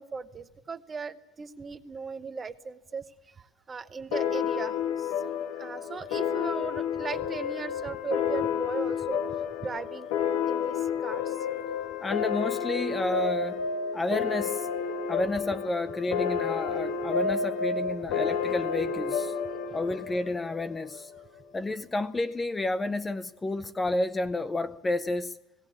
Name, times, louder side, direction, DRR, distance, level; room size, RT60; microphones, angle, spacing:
voice 1, 0.0-3.0 3.4-5.1 5.6-9.2 9.6-10.2 10.5-11.4, right 5 dB, 20° right, 0.9 m, -37 dB
sound 1, 4.1-21.2, left 7 dB, 75° left, 1.4 m, -30 dB
voice 2, 12.0-13.6 13.9-14.7 15.1-19.4 19.7-21.1 21.5-25.4, left 2 dB, 15° left, 0.6 m, -30 dB
17.5 x 17.0 x 9.7 m
supercardioid pair, 125°, 0 cm